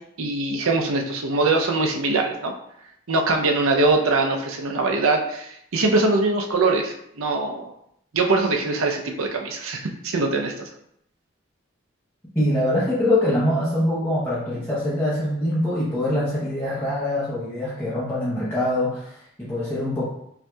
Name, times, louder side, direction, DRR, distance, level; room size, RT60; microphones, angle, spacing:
voice 1, 0.2-2.5 3.1-7.7 8.1-10.7, right 3 dB, 80° right, 2 dB, 0.6 m, -22 dB
voice 2, 12.3-20.0, left 1 dB, 10° left, -10 dB, 0.8 m, -24 dB
5.8 x 2.7 x 2.3 m, 0.74 s
head